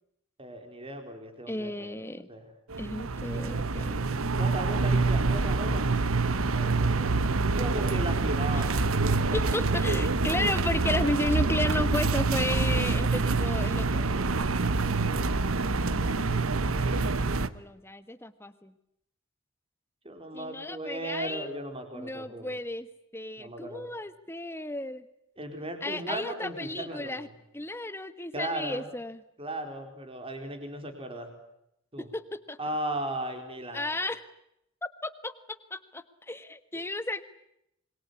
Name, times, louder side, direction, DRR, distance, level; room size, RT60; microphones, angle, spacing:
voice 1, 0.4-1.9 2.3-2.5 4.4-5.8 6.4-7.2 7.6-9.6 13.6-14.4 20.0-22.5 23.4-23.9 25.4-27.3 28.3-28.9 29.4-31.3 31.9-32.1 32.6-33.9, right 1 dB, 25° right, 6 dB, 4.4 m, -37 dB
voice 2, 1.5-2.3 2.8-4.2 8.5-8.7 9.3-14.1 14.8-18.7 20.3-21.6 21.9-22.9 23.1-25.0 25.8-27.3 27.5-29.2 32.0-32.6 33.7-34.2 34.8-37.2, left 1 dB, 10° left, 12 dB, 1.3 m, -34 dB
sound 1, 2.7-17.5, right 3 dB, 75° right, 1.0 m, -26 dB
27.0 x 22.5 x 8.4 m, 0.79 s
head